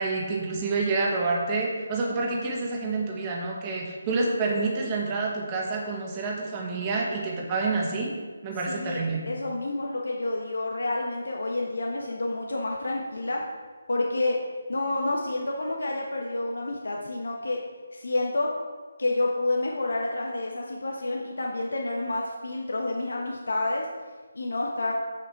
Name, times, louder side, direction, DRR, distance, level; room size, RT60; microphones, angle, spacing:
voice 1, 0.0-8.1 8.4-9.2, right 3 dB, 20° right, -1 dB, 1.4 m, -28 dB
voice 2, 8.7-13.4 13.9-14.4 14.7-17.6 17.9-18.5 19.0-23.9 24.3-24.9, left 2 dB, 85° left, -1 dB, 1.2 m, -29 dB
8.2 x 6.6 x 4.7 m, 1.4 s
hypercardioid pair, 170°, 0 cm